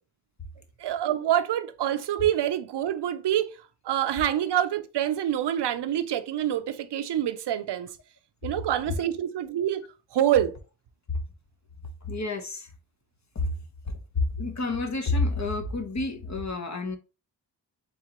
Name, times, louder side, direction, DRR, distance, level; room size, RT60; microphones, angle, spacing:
voice 1, 0.8-3.5 3.8-7.9 8.4-9.8 10.1-10.5, right 11 dB, 70° right, 0.6 m, -26 dB
voice 2, 12.0-12.7 13.3-13.5 14.1-17.0, left 3 dB, 40° left, 1.0 m, -29 dB
4.0 x 3.6 x 2.9 m
cardioid pair, 55°, 42 cm